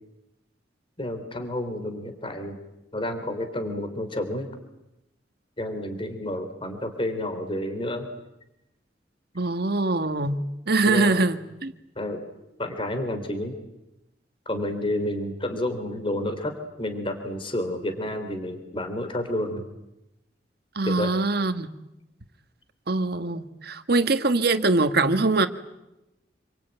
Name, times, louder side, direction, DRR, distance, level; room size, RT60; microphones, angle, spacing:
voice 1, 1.0-2.6 2.9-4.5 5.6-8.1 10.9-11.2 12.0-12.2 12.6-13.6 14.4-19.7 20.8-21.1, left 1 dB, 30° left, 3.3 m, -30 dB
voice 2, 9.3-11.7 20.7-21.7 22.9-25.5, right 3 dB, 60° right, 1.5 m, -23 dB
28.0 x 23.5 x 9.0 m
head